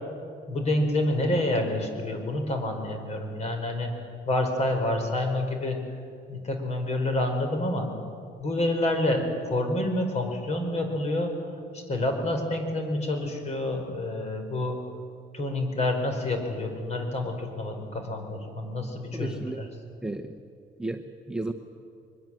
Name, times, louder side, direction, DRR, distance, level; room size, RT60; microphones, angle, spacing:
voice 1, 0.5-5.8 6.3-7.9 8.4-11.3 11.7-14.8 15.3-19.4, left 1 dB, 40° left, 5 dB, 4.8 m, -28 dB
voice 2, 19.1-19.7 20.0-20.4 20.8-21.5, right 2 dB, 5° right, 4 dB, 1.0 m, -33 dB
23.0 x 21.5 x 7.7 m, 2.4 s
cardioid pair, 110°, 17 cm